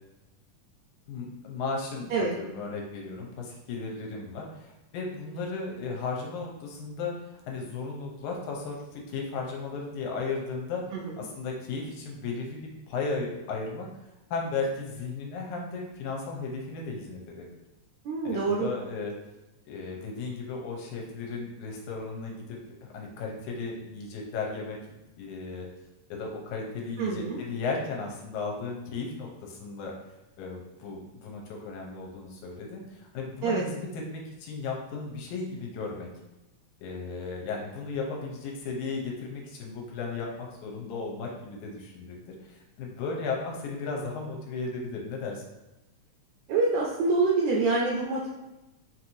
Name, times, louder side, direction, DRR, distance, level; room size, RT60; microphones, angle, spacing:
voice 1, 1.1-10.8 11.2-13.9 14.3-17.5 18.2-19.1 19.7-24.8 25.2-25.7 26.1-29.9 30.4-36.1 36.8-45.4, left 4 dB, 80° left, 0 dB, 2.1 m, -35 dB
voice 2, 10.9-11.2 18.1-18.7 27.0-27.4 33.4-33.6 46.5-48.3, right 3 dB, 80° right, -3 dB, 1.6 m, -26 dB
5.7 x 2.9 x 2.6 m, 0.97 s
omnidirectional pair, 3.6 m